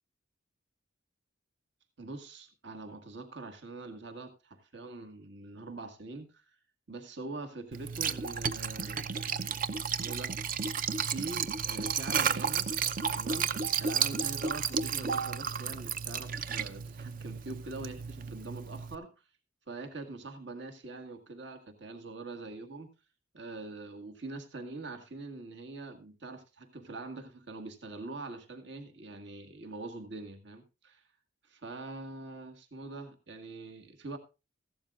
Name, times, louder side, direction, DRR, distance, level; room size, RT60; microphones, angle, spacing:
voice 1, 2.0-6.5 6.9-10.3 11.0-12.7 13.1-13.5 13.8-19.2 19.7-22.9 23.3-31.0 31.4-34.2, right 3 dB, 60° right, 5 dB, 1.7 m, -44 dB
Liquid, 7.7-19.0, right 6 dB, 45° right, 0.6 m, -33 dB
15.5 x 12.0 x 2.4 m, 0.29 s
head